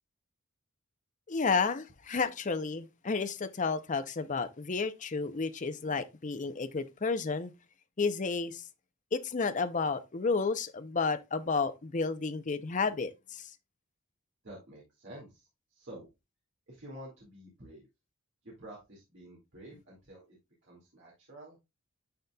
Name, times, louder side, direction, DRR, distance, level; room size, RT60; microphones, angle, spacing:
voice 1, 1.3-7.5 8.0-8.6 9.1-13.5, left 4 dB, 35° left, 0.6 m, -31 dB
voice 2, 14.4-16.1 16.7-17.9 18.4-21.6, right 1 dB, 60° right, 2.2 m, -50 dB
10.5 x 4.1 x 2.3 m
head